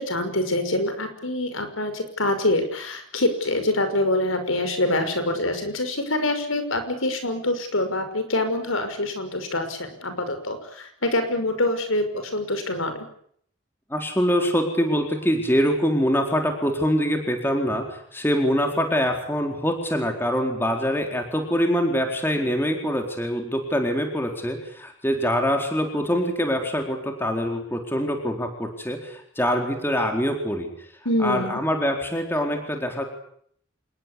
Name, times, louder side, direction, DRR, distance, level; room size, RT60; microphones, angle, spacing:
voice 1, 0.0-12.1 12.3-13.1 31.0-31.6, left 1 dB, 85° left, 9 dB, 5.9 m, -25 dB
voice 2, 13.9-30.7 31.2-33.0, equal, 10° left, 3 dB, 4.1 m, -24 dB
27.0 x 20.5 x 8.5 m, 0.65 s
head